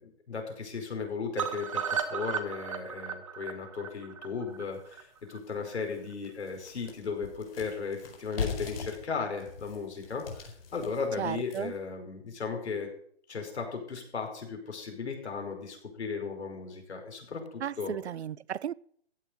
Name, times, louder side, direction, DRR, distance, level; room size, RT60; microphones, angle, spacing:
voice 1, 0.0-12.9 13.3-17.9, left 5 dB, 80° left, 5.1 m, -36 dB
sound 1, 1.4-5.4 5.7-5.8 6.1-6.2 6.5-6.6, right 7 dB, 30° right, 1.1 m, -35 dB
sound 2, 4.7-4.8 5.3-5.4 5.8-11.9, left 6 dB, 60° left, 4.4 m, -40 dB
voice 2, 11.2-11.7 17.6-18.7, right 10 dB, 75° right, 0.6 m, -35 dB
15.0 x 5.9 x 9.9 m
hypercardioid pair, 175°, 33 cm